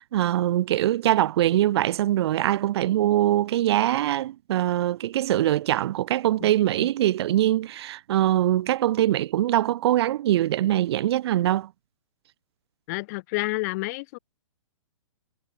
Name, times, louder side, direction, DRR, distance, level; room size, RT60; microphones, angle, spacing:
voice 1, 0.0-11.7, right 13 dB, 50° right, 0.5 m, -23 dB
voice 2, 12.9-14.2, left 24 dB, 30° left, 0.5 m, -29 dB
hypercardioid pair, 130°, 17 cm